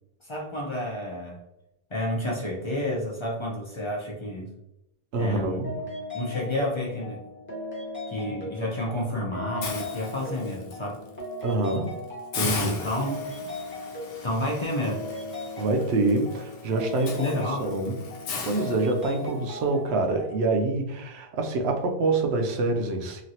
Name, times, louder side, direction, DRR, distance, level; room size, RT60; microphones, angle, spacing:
voice 1, 0.2-1.4 1.9-4.5 5.2-5.7 6.1-7.2 8.1-11.1 12.6-13.5 14.2-15.1 17.2-17.7, left 1 dB, 35° left, -2 dB, 0.5 m, -30 dB
voice 2, 5.1-5.9 11.4-11.9 12.3-12.9 15.6-17.3 17.6-18.0 18.5-23.2, right 3 dB, 80° right, 3 dB, 0.8 m, -26 dB
sound 1, 5.6-20.4, left 2 dB, 10° left, 0.8 m, -38 dB
Hiss, 9.6-10.7 11.2-11.4 11.7-11.8 12.3-19.4, left 5 dB, 70° left, 0.8 m, -37 dB
3.0 x 2.5 x 2.7 m, 0.86 s
omnidirectional pair, 1.1 m